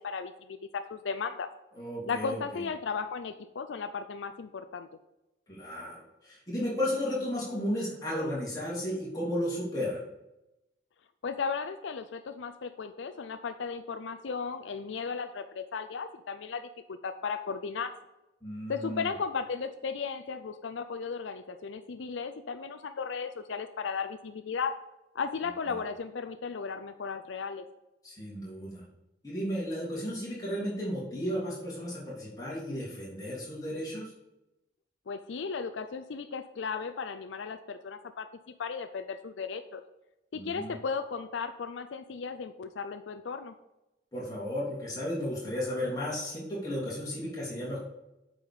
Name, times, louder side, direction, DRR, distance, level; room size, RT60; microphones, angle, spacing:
voice 1, 0.0-1.5 2.1-4.9 11.2-17.9 18.7-24.7 25.1-27.7 35.1-38.3 38.6-39.8 40.3-43.5, left 5 dB, 80° left, 8 dB, 0.5 m, -35 dB
voice 2, 1.7-2.4 5.5-10.1 18.4-19.1 28.0-28.8 29.2-34.1 40.3-40.7 44.1-47.8, equal, 20° left, -7 dB, 3.1 m, -34 dB
8.6 x 5.0 x 5.5 m, 0.94 s
head